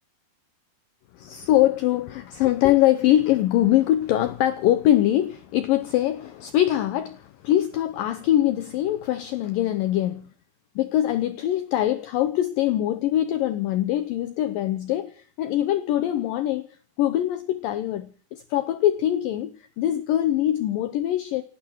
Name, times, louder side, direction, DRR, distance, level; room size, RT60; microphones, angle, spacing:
voice 1, 1.1-10.3 10.8-16.7 17.0-18.1 18.3-21.4, left 13 dB, 85° left, 1.9 m, -23 dB
29.0 x 10.0 x 4.6 m
omnidirectional pair, 5.1 m